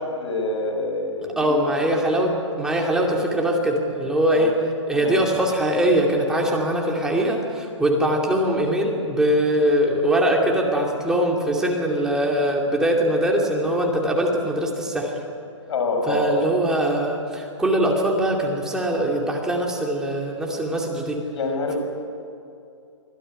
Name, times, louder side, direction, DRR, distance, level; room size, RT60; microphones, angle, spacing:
voice 1, 0.0-1.6 4.3-4.5 4.9-5.2 15.7-16.5 21.3-21.8, left 2 dB, 65° left, 4 dB, 6.1 m, -26 dB
voice 2, 1.2-4.6 4.9-15.1 16.1-21.2, right 1 dB, 5° right, -1 dB, 2.5 m, -22 dB
25.5 x 16.0 x 10.0 m, 2.6 s
hypercardioid pair, 160°, 16 cm